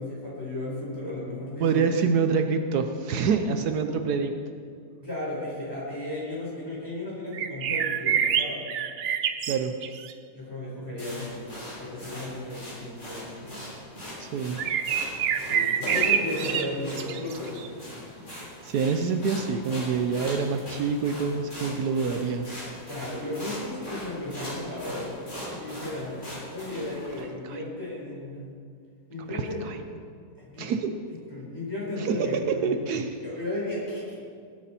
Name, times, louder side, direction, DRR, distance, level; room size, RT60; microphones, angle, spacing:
voice 1, 0.0-1.8 5.0-8.6 10.3-13.5 15.4-17.7 22.9-25.1 25.5-26.2 26.5-28.5 29.1-29.7 30.4-30.7 31.3-32.8 33.2-34.2, left 1 dB, 15° left, -5 dB, 4.1 m, -34 dB
voice 2, 1.6-4.3 9.5-9.7 14.2-14.6 18.3-22.5 27.5-27.6 29.3-29.8 30.6-30.9 32.0-33.1, right 5 dB, 75° right, 6 dB, 1.3 m, -26 dB
sound 1, 7.3-10.1 14.6-17.7, right 8 dB, 60° right, 0.8 m, -27 dB
sound 2, 11.0-27.2, left 1 dB, 30° left, 3.8 m, -40 dB
20.0 x 8.5 x 4.3 m, 2.2 s
omnidirectional pair, 1.7 m